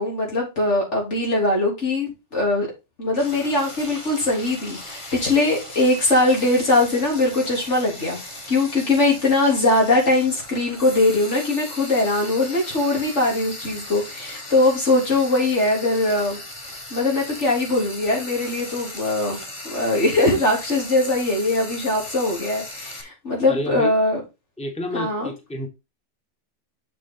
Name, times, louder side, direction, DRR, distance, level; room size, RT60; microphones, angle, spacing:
voice 1, 0.0-2.7 3.0-8.2 8.5-16.4 16.9-19.4 19.7-24.2 24.9-25.3, left 2 dB, 85° left, 3.7 m, -21 dB
Frying (food), 3.2-23.0, left 1 dB, 25° left, 1.6 m, -38 dB
voice 2, 23.5-23.9 24.6-25.7, left 1 dB, 5° left, 1.3 m, -29 dB
6.7 x 6.2 x 3.9 m
omnidirectional pair, 1.2 m